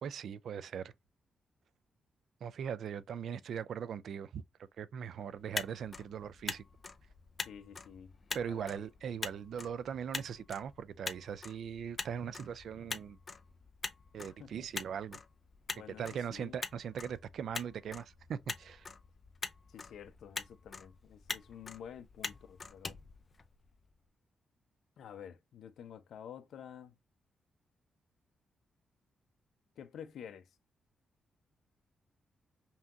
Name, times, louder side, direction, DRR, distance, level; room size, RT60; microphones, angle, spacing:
voice 1, 0.0-0.9 2.4-4.4 4.8-6.6 8.3-13.2 14.1-15.2 16.0-18.9, right 7 dB, 70° right, 0.4 m, -40 dB
Motor vehicle (road), 5.3-23.9, left 4 dB, 30° left, 0.5 m, -45 dB
voice 2, 7.4-8.1 8.5-8.8 14.4-14.7 15.7-16.5 19.7-23.0 25.0-26.9 29.8-30.5, left 8 dB, 80° left, 0.7 m, -50 dB
5.6 x 2.8 x 2.5 m
wide cardioid pair, 135°, 0 cm